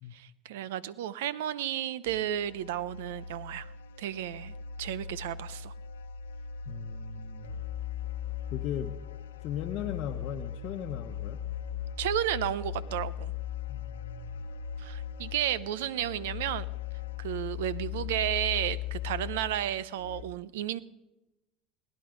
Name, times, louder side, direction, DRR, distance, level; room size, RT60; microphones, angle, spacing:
voice 1, 0.1-3.7 4.0-5.7 12.0-13.3 14.8-16.7 17.2-20.8, right 12 dB, 80° right, 19 dB, 0.6 m, -32 dB
sound 1, 2.1-20.2, left 9 dB, 90° left, 0.7 m, -39 dB
voice 2, 6.7-7.5 8.5-8.9 9.4-11.4 13.7-14.5, left 9 dB, 60° left, 1 dB, 1.0 m, -38 dB
19.5 x 9.9 x 5.2 m, 0.97 s
hypercardioid pair, 85°, 0 cm